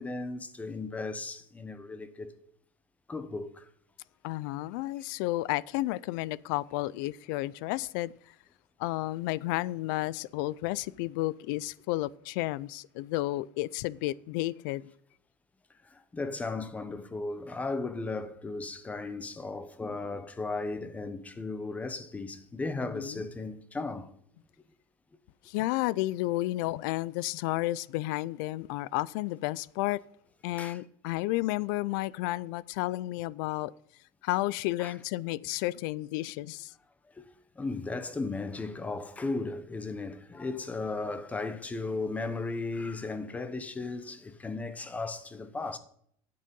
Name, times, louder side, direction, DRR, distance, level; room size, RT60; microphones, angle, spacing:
voice 1, 0.0-2.3 3.1-3.7 15.8-24.1 30.6-30.8 34.8-34.9 37.2-37.3 37.6-45.8, left 3 dB, 15° left, 1.0 m, -36 dB
voice 2, 4.2-8.1 8.8-14.9 22.9-23.3 25.4-30.0 30.4-33.7 34.2-36.7, left 18 dB, 85° left, 0.4 m, -32 dB
10.0 x 6.7 x 5.3 m
cardioid pair, 140°, 10 cm